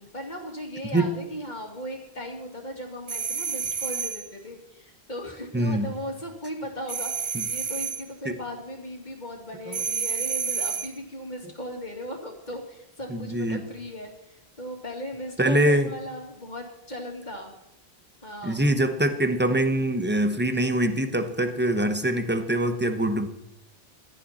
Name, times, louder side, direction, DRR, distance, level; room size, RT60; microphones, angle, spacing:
voice 1, 0.0-17.5 18.2-18.6, equal, 45° left, 2 dB, 2.7 m, -37 dB
sound 1, 3.1-4.3 6.9-8.1 9.7-11.0, right 6 dB, 35° right, 0.5 m, -29 dB
voice 2, 5.5-5.9 7.3-7.4 8.2-8.3 9.7-9.8 13.1-13.6 15.4-15.9 18.4-23.3, right 1 dB, 10° right, 8 dB, 1.1 m, -24 dB
16.5 x 13.0 x 4.3 m, 0.83 s
omnidirectional pair, 1.0 m